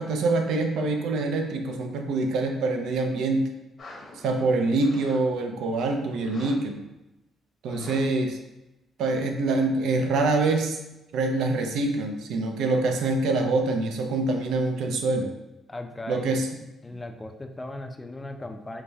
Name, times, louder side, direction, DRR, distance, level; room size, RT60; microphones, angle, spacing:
voice 1, 0.0-3.5 4.1-6.8 7.6-8.4 9.0-10.8 11.1-15.3 16.1-16.5, right 3 dB, 80° right, 4 dB, 0.5 m, -25 dB
sound 1, 3.8-5.2 5.5-5.7 6.1-6.6 6.9-7.0 7.7-8.0 8.3-8.4, left 2 dB, 55° left, 0.9 m, -44 dB
voice 2, 7.7-8.0 15.7-16.4 16.8-18.8, left 2 dB, 20° left, 5 dB, 0.4 m, -38 dB
4.7 x 2.2 x 2.7 m, 0.95 s
cardioid pair, 90°, 0 cm